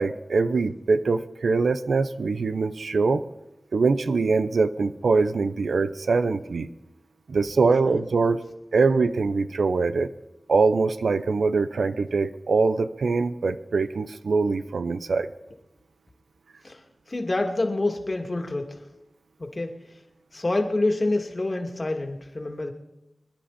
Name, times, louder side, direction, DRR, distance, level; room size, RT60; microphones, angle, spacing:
voice 1, 0.0-3.3 3.7-6.7 7.3-8.4 8.7-10.1 10.5-15.3, right 4 dB, 90° right, 11 dB, 0.6 m, -23 dB
voice 2, 17.1-18.8 19.4-19.7 20.3-22.7, left 2 dB, 45° left, 3 dB, 2.5 m, -27 dB
26.5 x 10.5 x 4.2 m, 0.95 s
cardioid pair, 50°, 0 cm